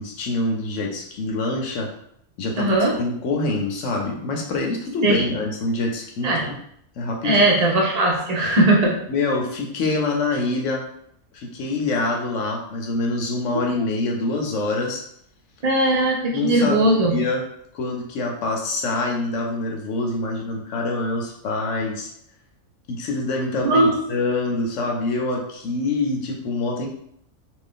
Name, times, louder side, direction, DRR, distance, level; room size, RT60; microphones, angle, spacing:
voice 1, 0.0-1.9 2.4-6.6 7.0-7.4 9.1-10.8 11.3-15.0 16.3-17.4 17.7-22.1 22.9-26.9, left 2 dB, 70° left, 1 dB, 0.9 m, -25 dB
voice 2, 2.6-2.9 5.0-5.2 6.2-6.4 7.2-9.0 13.5-13.6 15.6-17.1 23.6-24.0, right 1 dB, 40° right, -2 dB, 0.6 m, -19 dB
2.8 x 2.5 x 3.6 m, 0.70 s
omnidirectional pair, 1.5 m